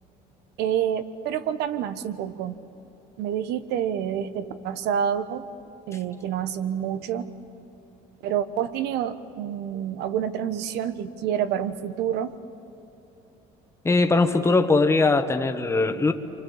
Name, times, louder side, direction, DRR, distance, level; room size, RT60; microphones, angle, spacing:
voice 1, 0.6-2.6 3.2-5.4 5.9-7.3 8.2-12.4, right 9 dB, 75° right, 12 dB, 1.2 m, -28 dB
voice 2, 13.8-16.1, left 3 dB, 15° left, 7 dB, 1.4 m, -20 dB
29.0 x 25.0 x 7.2 m, 3.0 s
cardioid pair, 100°, 17 cm